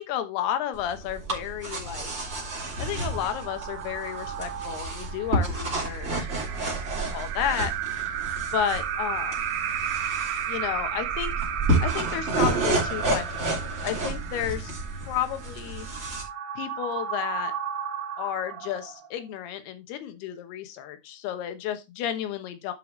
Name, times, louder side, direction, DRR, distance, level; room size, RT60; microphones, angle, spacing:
voice 1, 0.0-2.1 2.8-6.7 7.1-7.7 8.5-9.4 10.5-11.3 11.8-14.7 15.0-15.9 16.6-17.5 18.2-22.7, left 10 dB, 80° left, 9 dB, 3.1 m, -32 dB
sound 1, 0.7-16.2, right 2 dB, 20° right, 2.4 m, -31 dB
sound 2, 1.8-19.2, right 9 dB, 70° right, 1.9 m, -34 dB
11.5 x 5.6 x 3.1 m, 0.23 s
omnidirectional pair, 4.6 m